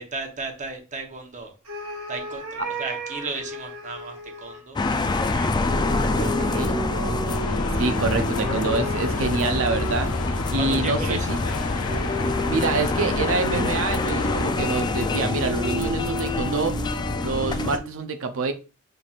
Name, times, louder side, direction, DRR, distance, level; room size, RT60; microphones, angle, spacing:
voice 1, 0.0-1.5 2.1-5.6 6.0-6.3 10.6-11.6, right 3 dB, 35° right, 0.9 m, -35 dB
sound 1, 1.7-4.6 5.7-10.5 11.9-18.0, right 1 dB, 85° right, 1.5 m, -34 dB
sound 2, 4.8-17.8, left 2 dB, 20° left, 0.3 m, -26 dB
voice 2, 6.2-6.7 7.8-10.1 10.5-11.4 12.4-16.8 17.2-18.5, right 3 dB, 65° right, 0.5 m, -26 dB
sound 3, 7.3-14.5, left 3 dB, 90° left, 0.6 m, -33 dB
5.6 x 3.3 x 2.4 m
head